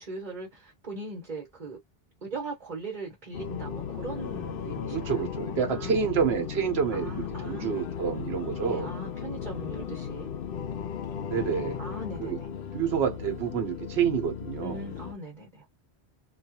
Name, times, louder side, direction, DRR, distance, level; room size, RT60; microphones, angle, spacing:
voice 1, 0.0-1.8 2.2-5.3 5.7-6.1 6.9-7.9 8.6-10.3 11.8-12.5 14.6-15.6, right 2 dB, 45° right, 1.1 m, -40 dB
sound 1, 3.3-15.1, left 7 dB, 65° left, 0.7 m, -36 dB
voice 2, 4.9-8.9 11.2-11.8 12.2-12.4 12.7-14.8, right 7 dB, 75° right, 1.1 m, -28 dB
2.6 x 2.4 x 2.8 m
omnidirectional pair, 1.1 m